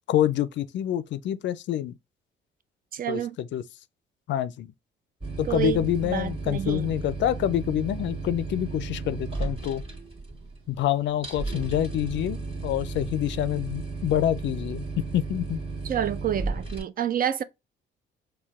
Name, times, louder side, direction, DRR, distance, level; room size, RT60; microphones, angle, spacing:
voice 1, 0.1-1.9 3.1-3.6 4.3-4.7 5.4-9.8 10.7-15.6, left 12 dB, 70° left, 0.4 m, -27 dB
voice 2, 2.9-3.4 5.4-6.9 15.8-17.4, right 10 dB, 45° right, 0.4 m, -28 dB
sound 1, 5.2-16.8, right 3 dB, 30° right, 1.5 m, -34 dB
4.4 x 2.2 x 3.5 m
cardioid pair, 90°, 20 cm